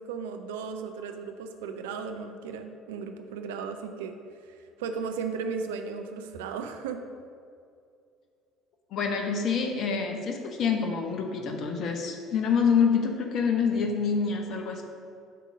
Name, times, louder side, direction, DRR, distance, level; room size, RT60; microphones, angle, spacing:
voice 1, 0.0-4.1 4.5-7.0, right 5 dB, 70° right, 6 dB, 0.5 m, -35 dB
voice 2, 8.9-14.8, left 6 dB, 50° left, 3 dB, 0.8 m, -26 dB
6.9 x 3.8 x 6.2 m, 2.3 s
figure-of-eight pair, 55°, 0 cm